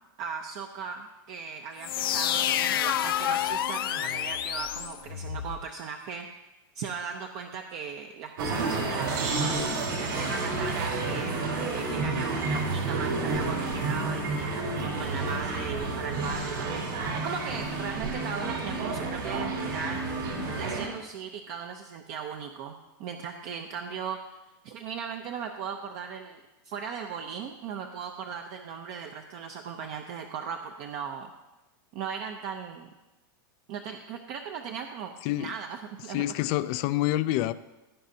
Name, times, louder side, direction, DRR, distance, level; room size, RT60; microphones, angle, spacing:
voice 1, 0.2-6.3 6.7-9.7 10.0-16.8 17.1-20.0 20.5-24.2 24.6-31.3 31.9-32.9 33.7-36.4, right 6 dB, 40° right, 4 dB, 0.7 m, -38 dB
sound 1, 1.8-5.6, left 11 dB, 85° left, 0.6 m, -29 dB
sound 2, 8.4-20.9, right 3 dB, 75° right, 3.8 m, -30 dB
voice 2, 36.1-37.5, left 15 dB, 35° left, 15 dB, 0.4 m, -27 dB
16.5 x 9.1 x 2.8 m, 1.0 s
supercardioid pair, 160°, 12 cm